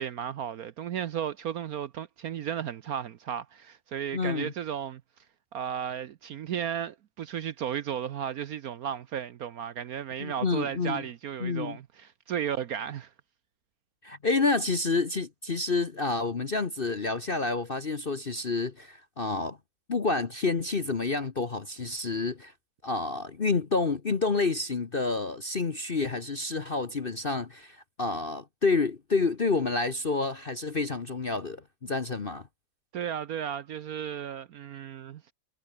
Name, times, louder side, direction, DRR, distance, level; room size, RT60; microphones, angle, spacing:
voice 1, 0.0-5.0 5.5-13.1 32.9-35.3, right 9 dB, 60° right, 1.1 m, -34 dB
voice 2, 4.1-4.5 10.2-11.0 11.4-11.8 14.0-19.6 19.9-22.5 22.8-32.5, left 3 dB, 35° left, 1.1 m, -29 dB
omnidirectional pair, 2.0 m